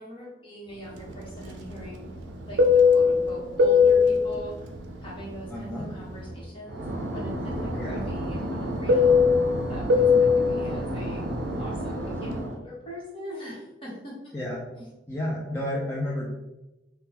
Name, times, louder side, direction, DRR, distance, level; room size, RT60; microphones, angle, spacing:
voice 1, 0.0-2.0 2.5-4.7 5.0-6.8 7.1-9.3 9.7-11.2 11.6-14.1 14.8-14.9, equal, 30° left, -6 dB, 1.2 m, -41 dB
Fixed-wing aircraft airplane, 1.0-6.4 6.7-12.5, left 4 dB, 80° right, 0.4 m, -23 dB
voice 2, 5.5-5.9 7.8-8.0 14.3-14.7 15.1-16.3, left 1 dB, 15° left, -5 dB, 0.4 m, -31 dB
3.4 x 2.2 x 2.8 m, 1.0 s
head